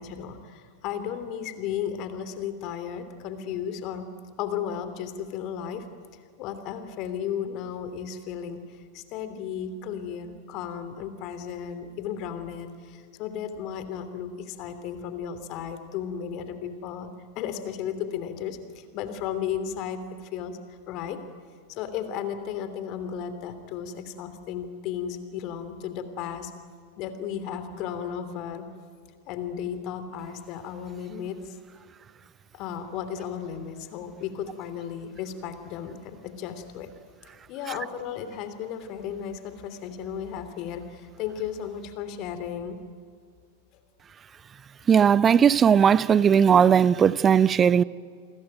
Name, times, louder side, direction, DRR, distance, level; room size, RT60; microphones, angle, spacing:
voice 1, 0.0-4.1 4.4-5.9 6.4-17.1 17.3-20.6 20.9-21.2 21.7-26.5 27.0-28.7 29.3-31.6 32.5-36.9 37.5-42.8, left 8 dB, 40° left, 2.9 m, -34 dB
voice 2, 44.9-47.8, right 7 dB, 20° right, 0.6 m, -18 dB
28.5 x 22.0 x 9.1 m
figure-of-eight pair, 90°, 0 cm